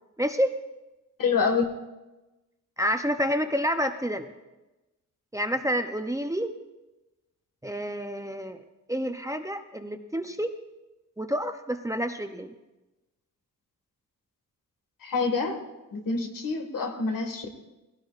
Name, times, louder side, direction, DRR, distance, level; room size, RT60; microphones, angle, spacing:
voice 1, 0.2-0.6 2.8-4.3 5.3-6.5 7.6-8.6 8.9-10.5 11.2-12.5, equal, 10° right, 6 dB, 0.5 m, -28 dB
voice 2, 1.2-1.7 15.0-15.6 15.9-17.5, left 4 dB, 80° left, 5 dB, 1.8 m, -26 dB
19.0 x 16.5 x 2.4 m, 1.0 s
wide cardioid pair, 170°, 33 cm